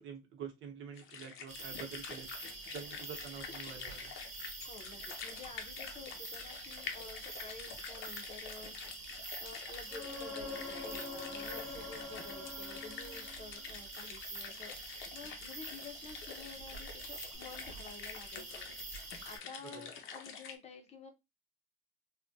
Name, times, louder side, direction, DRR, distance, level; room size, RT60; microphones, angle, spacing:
voice 1, 0.0-2.3 2.7-4.1 19.6-19.9, right 7 dB, 75° right, 4 dB, 0.9 m, -47 dB
sound 1, 0.9-20.5, left 6 dB, 85° left, 0.7 m, -48 dB
sound 2, 1.5-19.4, right 3 dB, 35° right, 0.9 m, -47 dB
voice 2, 4.7-18.7 19.2-21.1, left 4 dB, 30° left, 5 dB, 0.6 m, -51 dB
sound 3, 9.9-13.7 17.3-17.4, left 3 dB, 5° left, 0.9 m, -45 dB
3.4 x 2.2 x 2.6 m, 0.22 s
cardioid pair, 155°, 20 cm